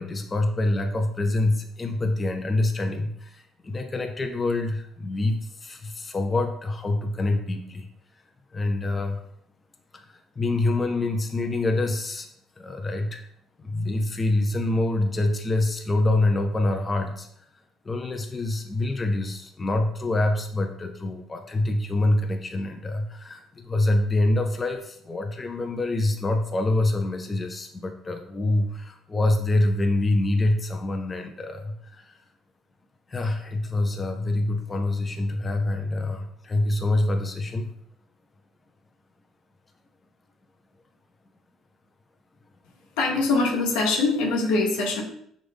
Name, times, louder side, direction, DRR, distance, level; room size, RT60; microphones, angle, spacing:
voice 1, 0.0-7.9 8.5-9.2 9.9-12.3 12.6-13.2 13.6-17.3 17.8-32.2 33.1-37.7, left 2 dB, 30° left, 4 dB, 0.6 m, -26 dB
voice 2, 43.0-45.0, left 3 dB, 80° left, 0 dB, 1.0 m, -23 dB
6.1 x 2.5 x 3.3 m, 0.69 s
hypercardioid pair, 60°, 0 cm